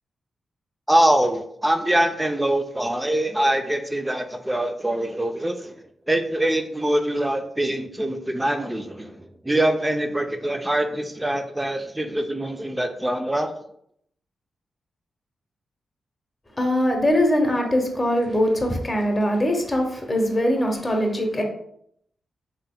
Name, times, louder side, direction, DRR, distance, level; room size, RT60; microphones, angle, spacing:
voice 1, 0.9-5.7 6.1-13.5, right 1 dB, 15° right, 0.4 m, -24 dB
voice 2, 16.6-21.4, equal, 25° left, 0.7 m, -22 dB
3.4 x 2.8 x 2.2 m
cardioid pair, 50°, 0 cm